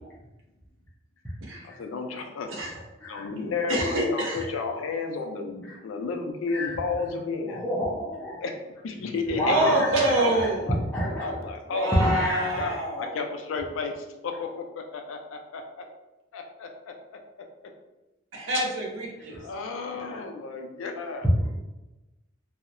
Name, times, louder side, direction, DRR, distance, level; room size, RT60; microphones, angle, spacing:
voice 1, 1.6-2.5 3.1-7.6 8.4-8.6 8.8-10.7 11.2-15.9 16.3-16.9 17.4-17.5 19.3-21.3, left 4 dB, 90° left, 4 dB, 0.4 m, -32 dB
voice 2, 3.7-4.5 9.5-10.8 11.7-13.2 18.3-19.4, right 1 dB, 75° right, -1 dB, 0.6 m, -26 dB
voice 3, 7.5-8.4 9.0-9.1 9.4-10.5 10.9-11.2 11.9-12.7 20.0-20.2 21.4-21.5, equal, 10° left, -9 dB, 0.5 m, -28 dB
2.7 x 2.0 x 2.4 m, 1.0 s
head